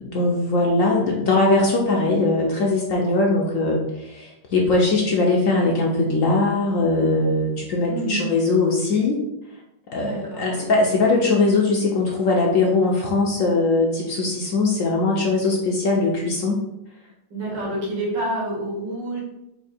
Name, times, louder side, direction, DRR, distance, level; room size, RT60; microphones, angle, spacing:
voice 1, 0.0-9.2 9.9-16.6, left 3 dB, 65° left, -1 dB, 0.9 m, -20 dB
voice 2, 7.9-8.2 10.0-10.7 17.3-19.2, right 1 dB, 80° right, -5 dB, 2.3 m, -28 dB
4.5 x 2.7 x 4.2 m, 0.89 s
omnidirectional pair, 1.9 m